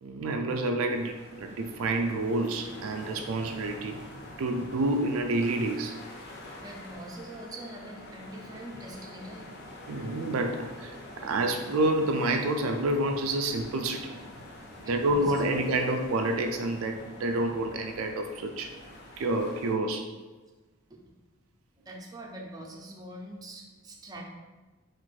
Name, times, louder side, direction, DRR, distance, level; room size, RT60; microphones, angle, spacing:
voice 1, 0.0-4.1 4.4-6.0 9.9-11.0 11.2-14.2 14.9-18.8 19.2-20.1, right 2 dB, 75° right, 5 dB, 0.4 m, -28 dB
sound 1, 0.9-19.8, left 1 dB, 55° left, 0.8 m, -46 dB
voice 2, 6.5-9.5 11.2-11.3 14.8-15.7 20.9-21.1 21.8-24.2, right 1 dB, 20° right, -2 dB, 0.6 m, -44 dB
4.3 x 2.4 x 4.5 m, 1.2 s
head